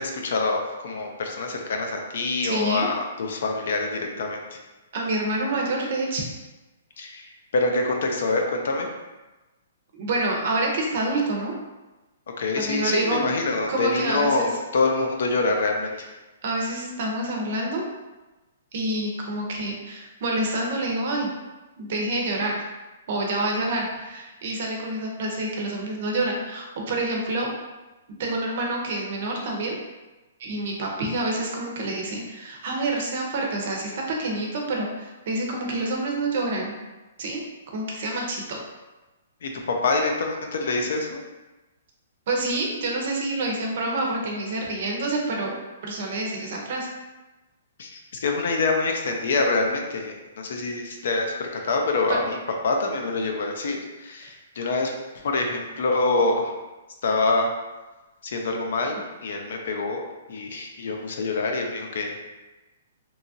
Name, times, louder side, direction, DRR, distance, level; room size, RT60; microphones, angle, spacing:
voice 1, 0.0-4.6 7.0-8.9 12.4-15.9 39.4-41.2 47.8-52.4 52.6-56.6 57.0-57.5 58.2-60.0 60.3-62.3, left 3 dB, 60° left, 2 dB, 0.4 m, -26 dB
voice 2, 2.4-2.9 4.9-6.2 9.9-11.5 12.6-14.5 16.4-17.8 18.7-21.3 21.8-22.6 23.1-27.5 28.2-29.8 30.4-36.8 37.2-37.4 37.7-38.6 42.3-46.9, right 2 dB, 45° right, -1 dB, 0.6 m, -27 dB
2.8 x 2.3 x 2.6 m, 1.1 s
hypercardioid pair, 170°, 0 cm